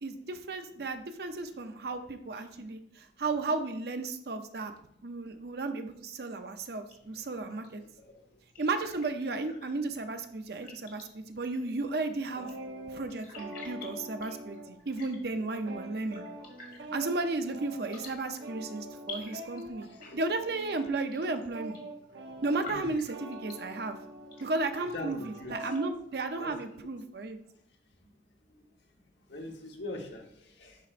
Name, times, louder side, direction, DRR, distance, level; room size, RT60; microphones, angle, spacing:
voice 1, 0.0-4.7 5.0-7.8 8.6-12.5 12.9-16.2 16.9-19.9 20.1-21.8 22.4-24.0 24.4-27.4, right 3 dB, 60° right, 7 dB, 0.6 m, -34 dB
sound 1, 6.9-26.8, left 4 dB, 55° left, 1.5 m, -53 dB
voice 2, 7.9-8.4 12.7-12.8 15.4-15.5 16.8-16.9 18.9-19.5 19.8-20.2 22.3-22.4 22.7-22.9 23.6-23.7 24.9-25.1 25.4-25.6 26.4-26.5 29.3-30.9, left 1 dB, 75° left, 2 dB, 1.2 m, -43 dB
sound 2, 12.3-15.0 15.3-25.9, right 1 dB, 85° right, 0.9 m, -45 dB
10.5 x 4.4 x 2.5 m, 0.73 s
head